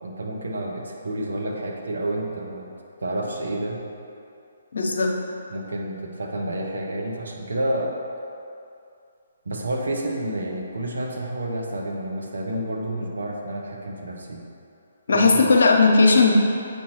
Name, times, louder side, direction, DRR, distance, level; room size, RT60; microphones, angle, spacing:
voice 1, 0.0-2.7 3.0-3.8 5.5-7.9 9.4-14.4 15.1-15.4, right 1 dB, 75° right, 0 dB, 0.9 m, -29 dB
voice 2, 4.7-5.1 15.1-16.3, left 4 dB, 70° left, 1 dB, 0.8 m, -17 dB
8.3 x 4.5 x 3.1 m, 2.6 s
figure-of-eight pair, 135°, 0 cm